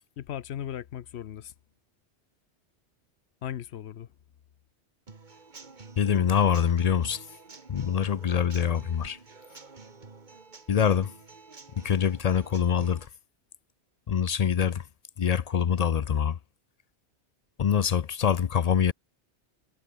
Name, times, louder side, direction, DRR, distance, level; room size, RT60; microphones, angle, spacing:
voice 1, 0.2-1.5 3.4-4.1, left 10 dB, 75° left, 1.0 m, -37 dB
Human voice / Acoustic guitar / Drum, 5.1-13.1, right 4 dB, 45° right, 1.8 m, -49 dB
voice 2, 6.0-7.2 7.7-9.2 10.7-11.1 11.8-13.1 14.1-14.8 15.2-16.4 17.6-18.9, left 8 dB, 50° left, 0.5 m, -24 dB
omnidirectional pair, 1.2 m